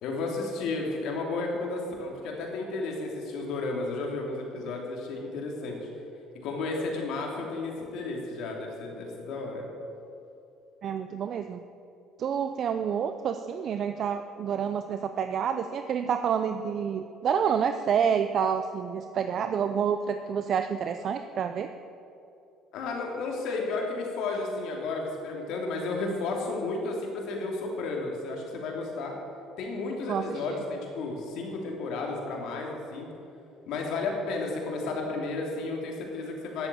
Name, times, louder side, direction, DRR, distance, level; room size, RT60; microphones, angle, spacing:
voice 1, 0.0-5.9 6.4-9.6 22.7-29.1 29.6-33.1 33.7-36.7, left 3 dB, 70° left, 0 dB, 3.0 m, -33 dB
voice 2, 10.8-11.6 12.2-21.7 30.1-30.6, right 7 dB, 55° right, 8 dB, 0.5 m, -28 dB
11.5 x 7.8 x 8.4 m, 2.6 s
supercardioid pair, 85°, 0 cm